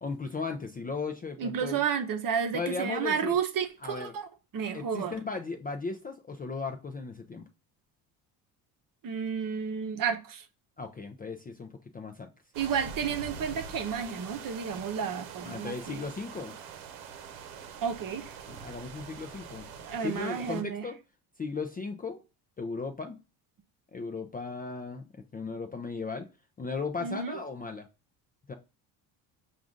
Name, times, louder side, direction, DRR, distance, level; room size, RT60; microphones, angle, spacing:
voice 1, 0.0-1.8 2.5-3.4 3.8-4.2 4.7-7.4 10.8-12.3 15.4-16.6 18.5-19.7 20.0-21.0 21.4-22.2 22.6-23.2 23.9-25.0 25.3-26.3 26.6-27.9 28.5-28.6, left 4 dB, 20° left, 0.4 m, -36 dB
voice 2, 1.4-4.3 4.5-5.1 9.0-10.4 12.5-16.0 17.8-18.3 19.8-20.8 27.0-27.4, right 7 dB, 45° right, 0.8 m, -31 dB
sound 1, 12.5-20.6, right 6 dB, 75° right, 0.9 m, -44 dB
4.8 x 2.6 x 3.6 m
supercardioid pair, 85°, 47 cm